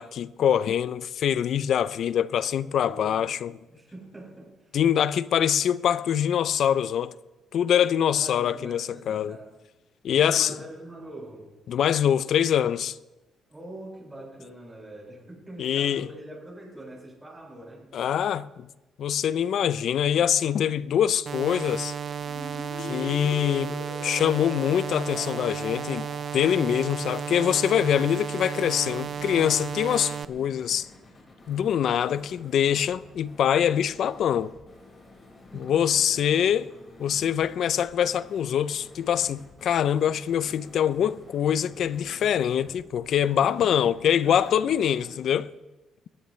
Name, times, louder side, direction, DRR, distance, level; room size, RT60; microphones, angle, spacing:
voice 1, 0.0-3.5 4.7-7.1 7.5-9.4 10.0-10.5 11.7-13.0 15.6-16.1 17.9-18.7 19.0-21.9 22.8-23.8 24.0-30.9 31.5-34.5 35.6-36.7 37.0-45.5, left 9 dB, 70° left, 0.5 m, -24 dB
voice 2, 2.7-3.3 3.7-4.8 8.1-9.6 10.1-11.5 13.5-17.9 35.5-36.5 37.5-37.6 43.4-45.3, right 1 dB, 15° right, 6.8 m, -44 dB
sound 1, 21.3-30.3, right 7 dB, 50° right, 0.5 m, -34 dB
sound 2, 22.2-27.0, left 4 dB, 85° left, 3.0 m, -42 dB
sound 3, 28.7-45.1, left 2 dB, 35° left, 5.1 m, -51 dB
21.5 x 14.0 x 3.2 m
cardioid pair, 90°, 0 cm